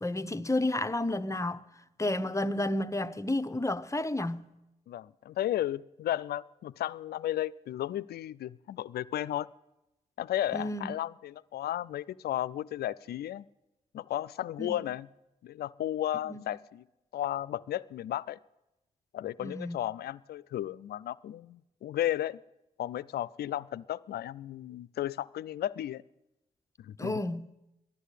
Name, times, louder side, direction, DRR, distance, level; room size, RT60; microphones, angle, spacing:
voice 1, 0.0-1.7 2.0-4.5 10.5-11.0 14.6-14.8 16.2-16.4 19.4-19.8 27.0-27.5, left 1 dB, 20° left, 0.9 m, -31 dB
voice 2, 4.9-9.5 10.2-13.4 13.9-15.1 15.4-16.8 17.1-18.4 19.1-22.4 22.8-26.0 26.8-27.2, left 12 dB, 75° left, 0.4 m, -34 dB
13.5 x 11.0 x 8.3 m
supercardioid pair, 45°, 17 cm